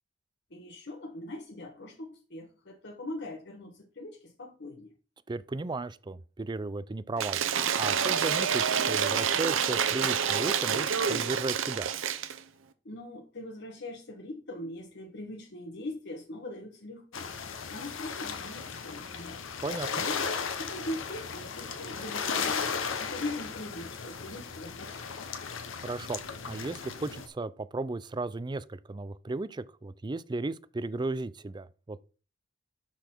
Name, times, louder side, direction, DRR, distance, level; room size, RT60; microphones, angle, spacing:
voice 1, 0.5-4.9 12.8-17.3 17.7-19.4 20.0-25.1, left 1 dB, 60° left, 1.4 m, -41 dB
voice 2, 5.3-7.4 7.8-11.9 19.6-20.1 25.8-32.0, right 3 dB, 25° right, 0.4 m, -35 dB
Cheering / Applause / Crowd, 7.2-12.4, right 7 dB, 85° right, 0.8 m, -28 dB
sound 1, 17.1-27.3, left 6 dB, 85° left, 1.1 m, -36 dB
11.5 x 4.1 x 4.5 m
head